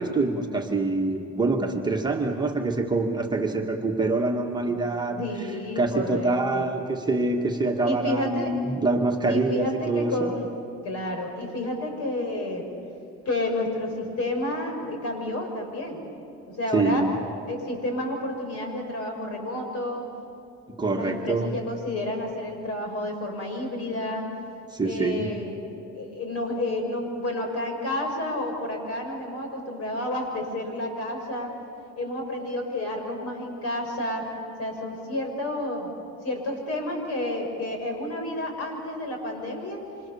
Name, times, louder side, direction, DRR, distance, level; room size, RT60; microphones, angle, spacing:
voice 1, 0.0-5.3 5.8-10.3 16.7-17.1 20.7-21.5 24.7-25.3, right 3 dB, 15° right, 1 dB, 1.8 m, -25 dB
voice 2, 5.2-6.7 7.8-8.5 9.3-10.5 10.8-12.7 13.2-16.0 16.6-17.0 17.5-20.1 20.9-24.3 24.8-25.6 25.9-31.5 32.0-34.3 34.6-35.9 36.2-39.8, left 1 dB, 55° left, 3 dB, 6.9 m, -30 dB
27.0 x 27.0 x 7.1 m, 2.8 s
cardioid pair, 135°, 29 cm